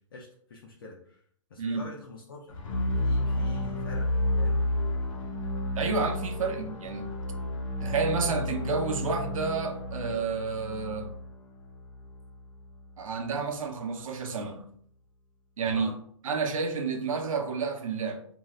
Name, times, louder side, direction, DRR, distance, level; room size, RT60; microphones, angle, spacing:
voice 1, 0.1-1.2 1.5-2.6 3.0-4.6 15.7-16.0, left 2 dB, 45° left, 0.5 m, -45 dB
sound 1, 2.5-12.5, left 1 dB, 70° left, 0.8 m, -31 dB
voice 2, 5.8-7.2 7.8-11.2 13.0-14.7 15.6-15.9 16.2-18.3, right 4 dB, 90° right, 0.6 m, -30 dB
2.6 x 2.3 x 3.1 m
hypercardioid pair, 175°, 17 cm